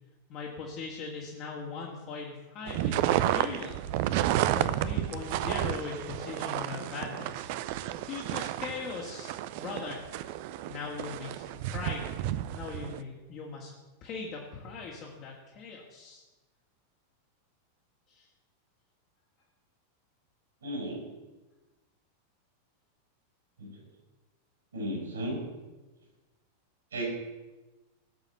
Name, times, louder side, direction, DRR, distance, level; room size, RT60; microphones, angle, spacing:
voice 1, 0.3-3.8 4.5-7.5 8.1-10.1 10.7-12.1 12.5-13.7 14.0-16.2 18.1-18.3, left 4 dB, 40° left, -3 dB, 2.3 m, -40 dB
sound 1, 2.7-13.0, right 13 dB, 50° right, 0.6 m, -31 dB
voice 2, 20.6-21.1 23.6-23.8 24.7-25.5 26.9-27.1, right 1 dB, 70° right, 0 dB, 6.2 m, -34 dB
18.0 x 7.1 x 7.1 m, 1.1 s
figure-of-eight pair, 90°, 0 cm